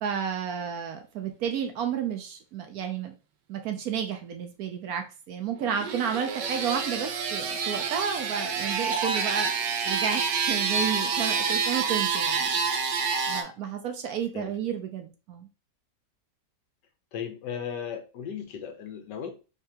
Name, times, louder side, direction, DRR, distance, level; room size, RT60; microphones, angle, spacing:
voice 1, 0.0-3.1 3.5-9.5 9.8-12.6 13.3-15.5, right 8 dB, 65° right, 6 dB, 1.0 m, -32 dB
sound 1, 5.6-13.4, right 5 dB, 85° right, 1.4 m, -28 dB
voice 2, 17.1-19.3, left 7 dB, 80° left, 5 dB, 1.5 m, -36 dB
4.5 x 2.9 x 3.4 m, 0.32 s
omnidirectional pair, 1.9 m